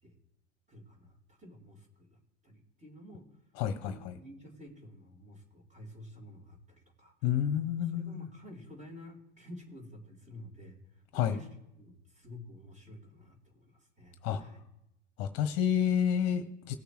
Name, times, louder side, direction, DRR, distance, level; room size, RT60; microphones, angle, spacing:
voice 1, 0.7-3.3 3.7-7.1 7.9-11.5 11.8-14.6, left 1 dB, 20° right, -1 dB, 3.7 m, -50 dB
voice 2, 3.6-4.1 7.2-8.3 11.1-11.3 14.2-14.4 15.2-16.7, left 9 dB, 45° left, 10 dB, 1.1 m, -29 dB
19.0 x 6.7 x 3.2 m, 0.87 s
figure-of-eight pair, 90°, 35 cm